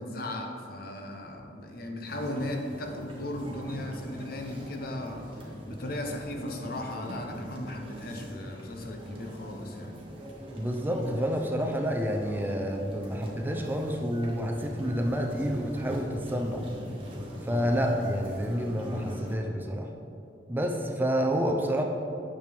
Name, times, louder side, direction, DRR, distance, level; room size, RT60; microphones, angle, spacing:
voice 1, 0.0-9.9, left 1 dB, 55° left, 3 dB, 0.8 m, -37 dB
sound 1, 2.1-19.3, equal, 30° right, 1.3 m, -42 dB
voice 2, 10.6-16.6 17.4-19.9 20.5-21.8, equal, 10° right, 2 dB, 0.5 m, -29 dB
9.4 x 6.6 x 3.5 m, 2.6 s
head